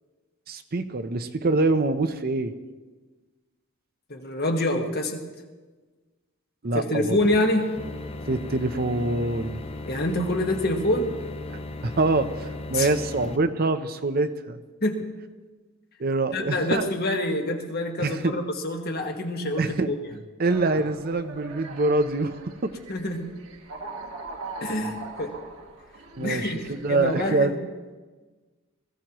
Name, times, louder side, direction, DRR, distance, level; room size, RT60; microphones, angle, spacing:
voice 1, 0.5-2.5 6.6-7.2 8.3-9.6 11.8-14.6 16.0-16.9 18.0-18.4 19.6-19.9 20.4-22.7 26.2-27.5, right 2 dB, 45° right, 8 dB, 0.7 m, -25 dB
voice 2, 4.1-5.2 6.7-7.7 9.8-11.1 12.7-12.9 14.8-15.0 16.3-20.0 22.9-23.3 24.6-25.3 26.2-26.6 26.9-27.6, left 1 dB, 45° left, 2 dB, 1.6 m, -26 dB
sound 1, 7.2-13.4, left 2 dB, 25° left, 0.7 m, -37 dB
sound 2, 20.4-27.3, right 3 dB, 80° right, 1.6 m, -41 dB
20.5 x 15.5 x 3.0 m, 1.3 s
head